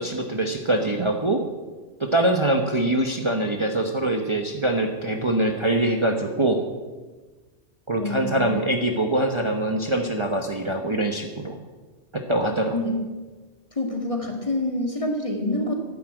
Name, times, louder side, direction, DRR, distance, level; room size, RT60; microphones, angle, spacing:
voice 1, 0.0-1.4 2.0-6.6 7.9-11.6 12.1-12.7, right 1 dB, 25° right, 4 dB, 1.1 m, -23 dB
voice 2, 8.0-8.4 12.5-13.0 13.7-15.9, left 1 dB, 25° left, 3 dB, 2.1 m, -27 dB
11.0 x 10.0 x 9.0 m, 1.3 s
omnidirectional pair, 1.2 m